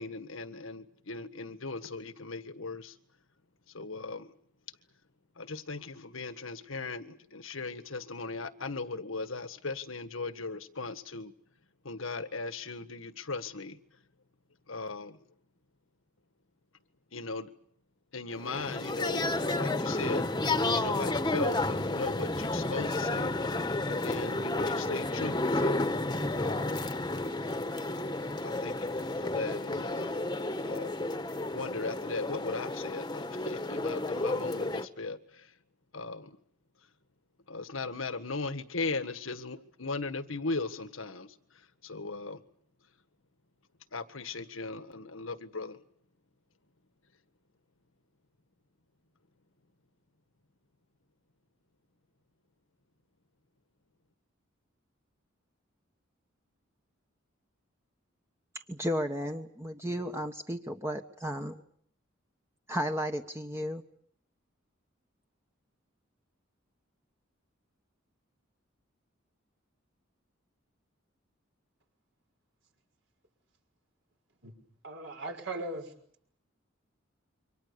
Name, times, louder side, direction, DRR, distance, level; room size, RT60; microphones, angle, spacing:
voice 1, 0.0-3.0 3.7-4.3 5.4-11.3 11.8-13.8 14.7-15.2 17.1-17.5 18.1-23.3 23.9-25.9 26.3-26.9 28.4-30.3 30.6-30.9 31.5-35.6 35.9-36.4 37.5-42.4 43.9-45.8, left 3 dB, 85° left, 1.7 m, -38 dB
sound 1, 18.4-34.9, left 2 dB, 20° left, 1.4 m, -31 dB
voice 2, 58.7-61.6 62.7-63.8, equal, 15° right, 1.3 m, -34 dB
voice 3, 74.8-75.9, right 2 dB, 65° right, 5.8 m, -38 dB
28.0 x 24.5 x 6.9 m
head